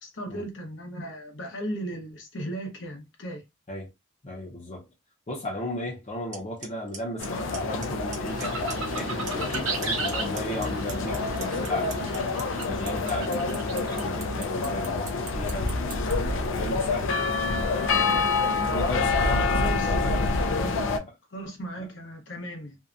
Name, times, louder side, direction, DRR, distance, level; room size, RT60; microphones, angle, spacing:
voice 1, 0.0-3.4 19.4-20.8 21.3-22.8, right 1 dB, 70° left, 0.8 m, -36 dB
voice 2, 4.2-4.9 5.3-8.6 8.9-12.4 12.7-15.7 16.1-18.4 18.7-21.1, left 1 dB, 35° left, 0.6 m, -36 dB
Clock, 6.3-6.4 6.6-7.0 7.2-7.9 8.1-8.4 8.7-9.6 9.8-16.1, right 6 dB, 40° right, 0.6 m, -38 dB
sound 1, 7.2-21.0, left 3 dB, 90° left, 0.4 m, -27 dB
sound 2, 8.3-14.1, right 3 dB, 80° right, 0.7 m, -35 dB
2.7 x 2.1 x 2.4 m
head